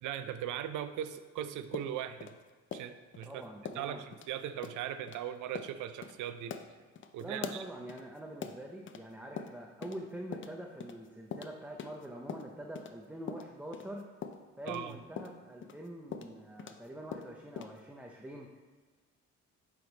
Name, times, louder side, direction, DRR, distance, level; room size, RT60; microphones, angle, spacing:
voice 1, 0.0-2.3 2.7-3.4 3.7-6.5 7.1-7.6 14.7-15.0, right 10 dB, 80° right, 10 dB, 0.5 m, -39 dB
sound 1, 1.7-3.3 3.6-3.9 4.1-4.3 4.6-4.8 5.1-5.2 5.5-5.7 6.0-6.2 6.5-9.0 9.4-10.0 10.3-12.9 13.3-16.9 17.1-17.8, left 6 dB, 40° left, 0.5 m, -43 dB
voice 2, 3.2-4.0 7.2-14.1 14.6-18.6, right 1 dB, 5° right, 0 dB, 0.6 m, -45 dB
7.7 x 3.5 x 4.0 m, 1.5 s
cardioid pair, 90°, 30 cm